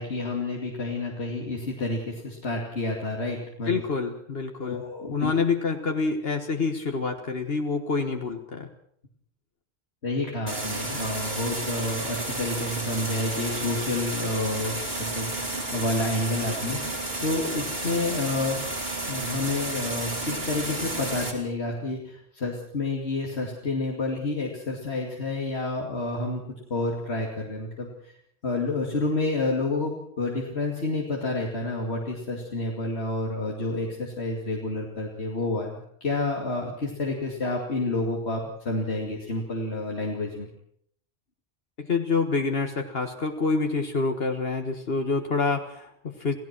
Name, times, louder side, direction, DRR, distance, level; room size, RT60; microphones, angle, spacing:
voice 1, 0.0-3.8 4.6-5.3 10.0-18.6 19.1-28.1 28.4-40.5, left 2 dB, 90° left, -1 dB, 2.8 m, -29 dB
voice 2, 3.7-4.8 5.1-8.7 41.8-46.3, left 4 dB, 70° left, 4 dB, 1.7 m, -27 dB
sound 1, 10.5-21.3, right 2 dB, 70° right, 4.3 m, -31 dB
28.0 x 17.0 x 6.1 m, 0.67 s
omnidirectional pair, 1.1 m